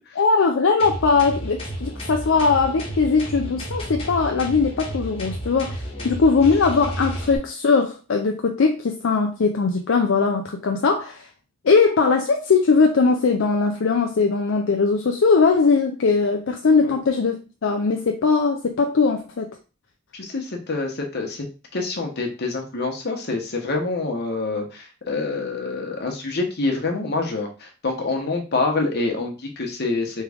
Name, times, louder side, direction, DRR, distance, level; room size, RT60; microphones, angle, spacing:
voice 1, 0.2-11.3 11.6-17.4 17.6-19.5, left 4 dB, 70° left, 3 dB, 0.5 m, -20 dB
sound 1, 0.8-7.4, right 1 dB, 30° left, 1.2 m, -32 dB
voice 2, 20.1-21.5 21.7-30.2, left 3 dB, 55° left, 2 dB, 1.0 m, -26 dB
3.6 x 3.3 x 3.4 m, 0.33 s
head